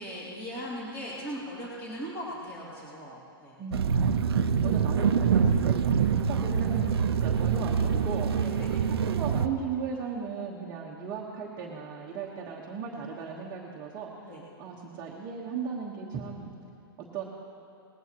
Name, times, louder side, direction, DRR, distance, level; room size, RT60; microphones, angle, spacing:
voice 1, 0.0-3.6 8.4-8.7 14.2-14.4, equal, 20° left, -8 dB, 2.7 m, -39 dB
voice 2, 3.6-8.3 8.7-14.1 14.6-16.5 17.1-17.2, right 6 dB, 25° right, -4 dB, 1.3 m, -37 dB
sound 1, 3.7-9.5, right 7 dB, 80° right, 0.7 m, -25 dB
19.5 x 16.0 x 3.0 m, 2.6 s
hypercardioid pair, 165°, 13 cm